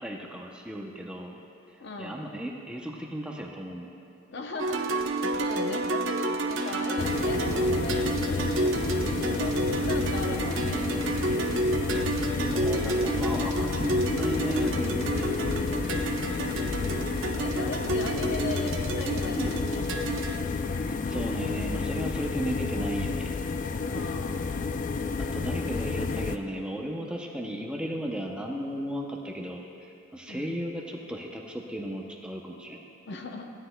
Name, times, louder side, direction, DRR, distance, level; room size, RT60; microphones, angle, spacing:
voice 1, 0.0-1.4 1.7-3.9 9.3-9.9 11.9-12.0 12.5-15.5 19.4-19.7 20.6-23.4 25.2-32.8, equal, 5° right, 0 dB, 0.6 m, -35 dB
voice 2, 1.8-2.2 4.3-4.9 5.4-8.8 9.0-9.6 9.8-10.9 15.5-16.5 17.3-20.2 23.9-24.6 30.3-30.6 32.8-33.5, left 2 dB, 55° left, 3 dB, 0.7 m, -38 dB
sound 1, 4.6-20.4, right 1 dB, 70° right, 0.7 m, -30 dB
sound 2, 7.0-26.4, left 4 dB, 40° left, 0.3 m, -31 dB
16.0 x 9.7 x 2.2 m, 2.7 s
head